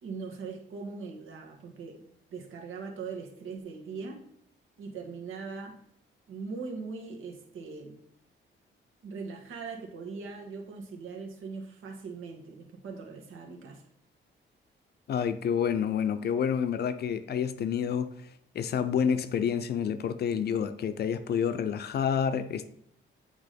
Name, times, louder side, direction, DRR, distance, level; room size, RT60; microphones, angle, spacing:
voice 1, 0.0-2.0 2.3-4.2 4.8-5.7 6.3-8.0 9.0-13.8, right 4 dB, 90° right, 1 dB, 1.6 m, -40 dB
voice 2, 15.1-18.1 18.5-22.7, left 7 dB, 55° left, 12 dB, 0.5 m, -28 dB
8.3 x 3.6 x 5.1 m, 0.71 s
wide cardioid pair, 165°, 20 cm